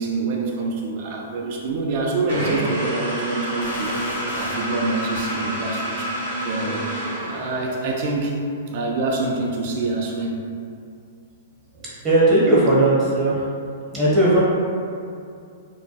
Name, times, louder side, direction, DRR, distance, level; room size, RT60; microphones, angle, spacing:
voice 1, 0.0-3.9 4.3-6.8 7.3-8.4 8.7-10.5, right 3 dB, 50° right, -1 dB, 0.4 m, -26 dB
sound 1, 2.3-7.9, right 1 dB, 80° right, 0.9 m, -28 dB
sound 2, 3.6-4.8 5.1-5.5, left 2 dB, 65° left, 0.4 m, -36 dB
voice 2, 12.0-13.4 13.9-14.4, right 1 dB, 25° right, -8 dB, 0.9 m, -17 dB
2.2 x 2.2 x 2.7 m, 2.4 s
hypercardioid pair, 130°, 0 cm